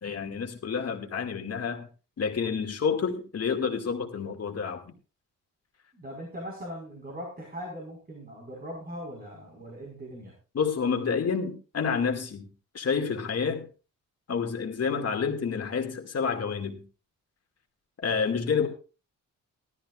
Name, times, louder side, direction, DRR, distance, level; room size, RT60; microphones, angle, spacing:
voice 1, 0.0-1.9 2.2-4.9 10.5-12.5 12.7-13.7 14.3-16.8 18.0-18.7, left 6 dB, 50° left, 2.4 m, -29 dB
voice 2, 5.9-10.3 18.6-18.7, equal, 30° right, 5.1 m, -40 dB
18.0 x 13.5 x 2.5 m
cardioid pair, 100°, 32 cm